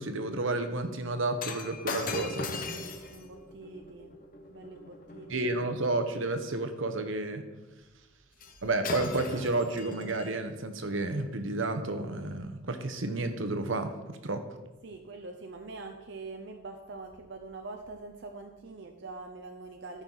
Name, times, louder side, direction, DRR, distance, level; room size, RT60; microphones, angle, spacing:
voice 1, 0.0-2.5 5.3-7.4 8.6-14.4, right 2 dB, 75° right, 8 dB, 0.9 m, -31 dB
Shatter, 1.4-5.8 8.4-8.6 8.8-10.4 11.1-11.2, left 3 dB, 45° left, 0.9 m, -39 dB
voice 2, 2.7-4.2 4.5-5.8 14.8-20.0, right 3 dB, 60° right, 3 dB, 0.7 m, -44 dB
13.5 x 5.7 x 4.0 m, 1.2 s
head